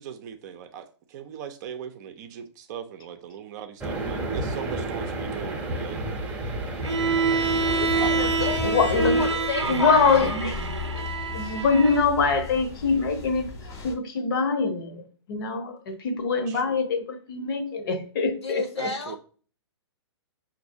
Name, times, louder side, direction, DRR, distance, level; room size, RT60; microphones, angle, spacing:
voice 1, 0.0-6.0 8.0-8.1 16.3-16.8 18.8-19.2, right 8 dB, 40° right, 0.6 m, -39 dB
sound 1, 3.8-9.3, right 2 dB, 10° right, 0.8 m, -31 dB
Bowed string instrument, 6.8-12.1, right 4 dB, 85° right, 0.6 m, -26 dB
sound 2, 7.5-14.0, left 7 dB, 25° left, 0.8 m, -36 dB
voice 2, 7.7-8.8 9.0-10.5 18.4-19.2, left 4 dB, 70° left, 1.2 m, -31 dB
voice 3, 8.6-9.2 9.7-10.5 10.9-13.5 13.8-18.9, left 4 dB, 50° left, 0.9 m, -24 dB
6.1 x 2.7 x 2.7 m
figure-of-eight pair, 115°, 15 cm